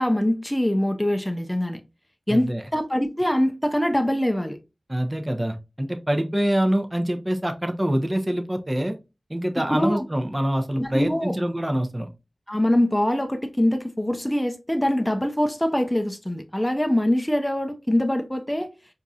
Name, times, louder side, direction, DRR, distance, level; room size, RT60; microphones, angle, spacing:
voice 1, 0.0-1.8 2.3-4.6 9.7-10.1 10.8-11.3 12.5-18.7, left 1 dB, 10° left, 0.6 m, -23 dB
voice 2, 2.3-2.6 4.9-9.0 9.3-12.1, right 1 dB, 20° right, 0.7 m, -25 dB
4.6 x 2.7 x 2.3 m
wide cardioid pair, 45°, 0 cm